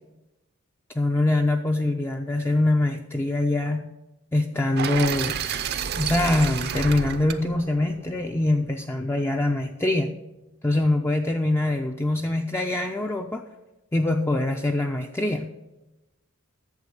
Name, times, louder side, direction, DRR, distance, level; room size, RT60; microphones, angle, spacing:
voice 1, 1.0-3.9 4.3-5.4 6.0-10.1 10.6-13.4 13.9-15.5, left 2 dB, 10° left, 3 dB, 0.4 m, -24 dB
sound 1, 4.8-8.8, right 7 dB, 45° right, 0.5 m, -31 dB
8.3 x 7.0 x 6.5 m, 1.0 s
head